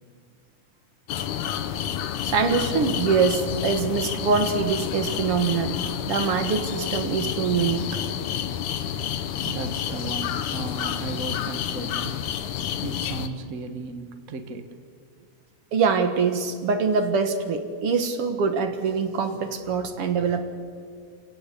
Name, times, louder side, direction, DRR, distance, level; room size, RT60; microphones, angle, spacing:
sound 1, 1.1-13.3, left 9 dB, 70° left, 2.4 m, -29 dB
voice 1, 2.2-5.8 6.1-8.0 15.7-20.4, right 5 dB, 50° right, 8 dB, 2.1 m, -24 dB
voice 2, 9.4-12.2 12.8-14.7 15.2-15.3, right 3 dB, 70° right, 7 dB, 0.8 m, -35 dB
28.0 x 18.0 x 8.5 m, 2.2 s
omnidirectional pair, 3.9 m